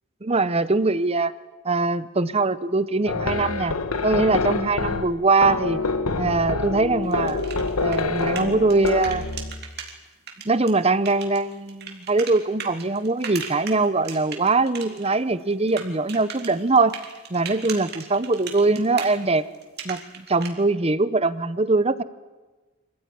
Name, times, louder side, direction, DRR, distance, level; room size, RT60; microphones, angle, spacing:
voice 1, 0.2-1.3 1.6-3.8 4.0-5.8 6.2-7.4 7.8-9.2 10.4-17.0 17.3-19.4 19.8-22.0, right 3 dB, 25° right, 15 dB, 0.8 m, -22 dB
sound 1, 3.1-9.6, left 3 dB, 85° left, 1.4 m, -26 dB
sound 2, 7.0-9.9 10.3-15.2 15.4-20.5, right 7 dB, 50° right, 3.2 m, -37 dB
26.0 x 15.5 x 10.0 m, 1.2 s
head